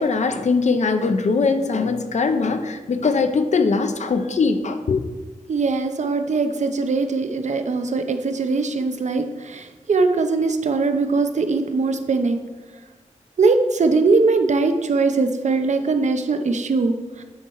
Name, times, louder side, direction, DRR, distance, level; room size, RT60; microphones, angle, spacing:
voice 1, 0.0-5.0, left 4 dB, 60° left, 8 dB, 0.6 m, -21 dB
voice 2, 5.5-12.4 13.4-17.2, right 3 dB, 65° right, 7 dB, 0.7 m, -21 dB
9.5 x 4.2 x 4.6 m, 1.2 s
wide cardioid pair, 100°, 13 cm